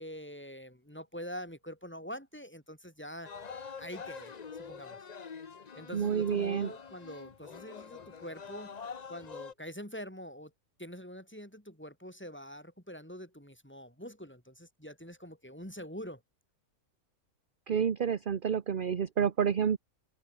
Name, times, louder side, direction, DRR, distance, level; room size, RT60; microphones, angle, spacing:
voice 1, 0.0-3.3 3.8-5.0 5.7-8.7 9.1-10.5 10.8-16.2, equal, 5° left, 4.9 m, -45 dB
sound 1, 3.2-9.5, left 6 dB, 35° left, 0.8 m, -46 dB
voice 2, 5.9-6.7 17.7-19.8, right 7 dB, 40° right, 0.9 m, -29 dB
open air
omnidirectional pair, 1.6 m